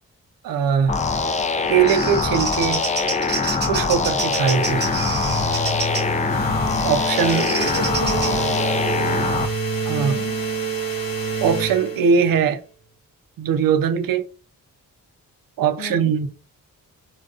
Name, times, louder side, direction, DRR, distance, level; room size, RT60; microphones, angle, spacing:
voice 1, 0.4-0.9 1.7-2.9 3.6-4.8 6.8-7.5 9.9-10.2 11.4-12.6 13.4-14.3 15.6-16.3, right 7 dB, 65° right, 0.5 m, -20 dB
sound 1, 0.9-9.5, left 4 dB, 20° left, 0.3 m, -23 dB
Bird vocalization bird call bird song, 1.4-6.2 7.2-8.3, right 3 dB, 25° right, 0.8 m, -29 dB
sound 2, 4.2-12.5, right 3 dB, 60° left, 0.9 m, -27 dB
voice 2, 7.4-9.4 10.0-10.4 15.8-16.1, left 2 dB, 85° left, 0.6 m, -34 dB
2.3 x 2.3 x 2.4 m
cardioid pair, 50°, 38 cm